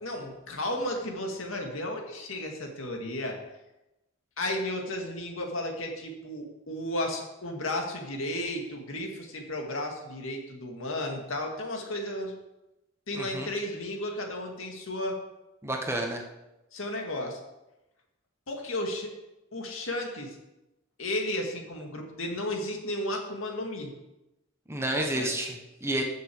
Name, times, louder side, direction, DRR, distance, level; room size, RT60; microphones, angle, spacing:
voice 1, 0.0-3.4 4.4-12.3 13.1-15.2 16.7-17.4 18.5-19.1 19.5-20.4 21.0-23.9 24.9-25.3, left 1 dB, 70° left, 2 dB, 2.0 m, -33 dB
voice 2, 13.1-13.5 15.6-16.2 24.7-26.0, right 1 dB, 10° right, 2 dB, 1.1 m, -30 dB
14.0 x 6.7 x 4.7 m, 0.97 s
head